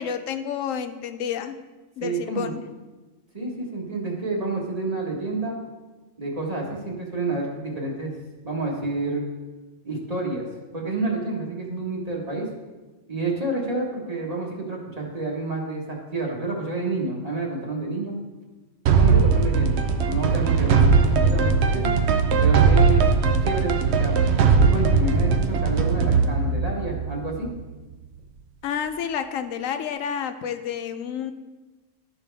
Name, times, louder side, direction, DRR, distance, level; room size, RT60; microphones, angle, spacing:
voice 1, 0.0-1.6 2.0-2.6 28.6-31.3, left 8 dB, 85° left, 9 dB, 1.0 m, -29 dB
voice 2, 2.0-2.6 3.3-5.6 6.2-8.2 8.4-9.3 9.8-10.5 10.7-12.5 13.1-18.1 18.9-19.7 20.0-21.9 22.4-23.1 23.4-24.2 24.6-27.5, right 3 dB, 30° right, -2 dB, 1.4 m, -29 dB
sound 1, 18.9-27.7, right 5 dB, 65° right, 0.8 m, -19 dB
12.5 x 4.5 x 3.4 m, 1.2 s
omnidirectional pair, 1.3 m